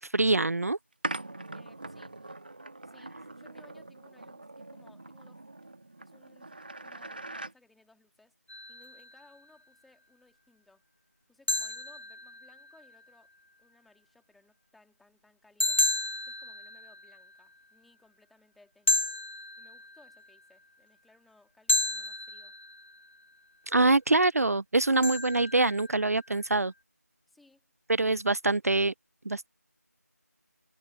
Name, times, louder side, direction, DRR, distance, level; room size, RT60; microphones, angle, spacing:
voice 1, 0.1-0.8 23.7-26.7 27.9-28.9 29.3-29.5, right 2 dB, 65° right, 0.4 m, -24 dB
sound 1, 1.0-7.5, right 2 dB, 35° right, 1.5 m, -42 dB
voice 2, 1.5-2.2 2.8-5.5 6.0-8.3 8.7-10.8 11.3-13.3 13.6-15.8 16.3-19.1 19.6-22.5 27.3-27.6, left 2 dB, ahead, 1.7 m, -63 dB
sound 2, 8.5-9.3 11.5-12.9 15.6-17.4 18.9-20.3 21.7-23.1 25.0-26.2, left 2 dB, 45° left, 0.7 m, -32 dB
figure-of-eight pair, 175°, 9 cm